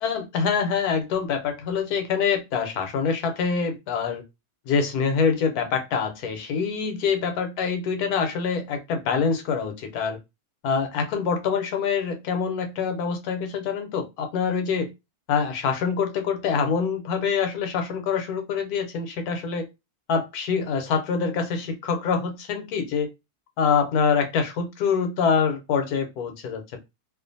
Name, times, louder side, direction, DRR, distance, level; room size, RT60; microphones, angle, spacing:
voice 1, 0.0-4.2 4.7-10.2 10.6-14.9 15.3-19.7 20.1-23.1 23.6-26.8, left 6 dB, 80° left, 1.1 m, -25 dB
2.4 x 2.4 x 2.6 m
omnidirectional pair, 1.7 m